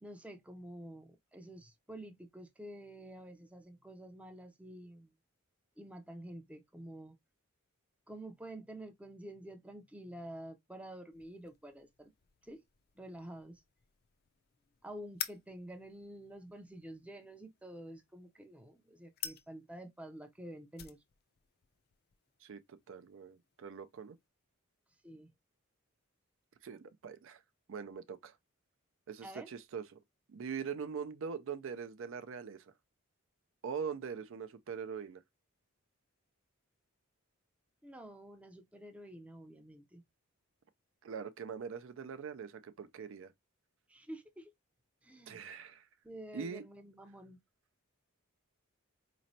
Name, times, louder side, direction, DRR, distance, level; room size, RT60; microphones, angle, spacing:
voice 1, 0.0-5.1 5.8-7.2 8.1-12.1 12.4-12.6 13.0-13.6 14.8-21.0 25.0-25.3 29.2-29.5 37.8-40.0 43.9-44.5 45.0-45.4 46.0-47.4, right 1 dB, 5° right, 0.5 m, -49 dB
sound 1, 11.1-24.3, left 11 dB, 45° left, 0.5 m, -51 dB
voice 2, 22.4-24.2 26.6-27.4 27.7-28.3 29.1-30.0 30.3-32.7 33.6-35.2 41.0-43.3 45.3-45.9 46.3-46.6, right 6 dB, 60° right, 0.4 m, -42 dB
4.2 x 3.0 x 2.6 m
head